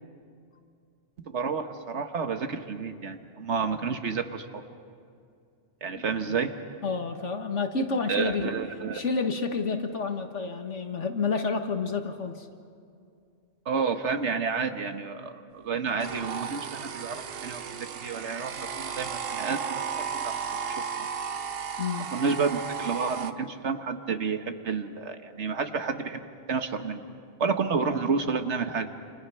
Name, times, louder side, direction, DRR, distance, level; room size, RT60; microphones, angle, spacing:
voice 1, 1.3-4.5 5.8-6.5 8.1-9.0 13.6-19.8 20.1-20.3 21.0-21.1 22.1-27.0 27.4-28.9, right 5 dB, 75° right, 7 dB, 1.6 m, -30 dB
voice 2, 6.8-8.5 8.9-12.5 21.8-22.1, left 4 dB, 85° left, 5 dB, 1.9 m, -29 dB
sound 1, 16.0-23.3, right 6 dB, 60° right, 1.0 m, -34 dB
29.0 x 27.0 x 5.7 m, 2.4 s
omnidirectional pair, 1.2 m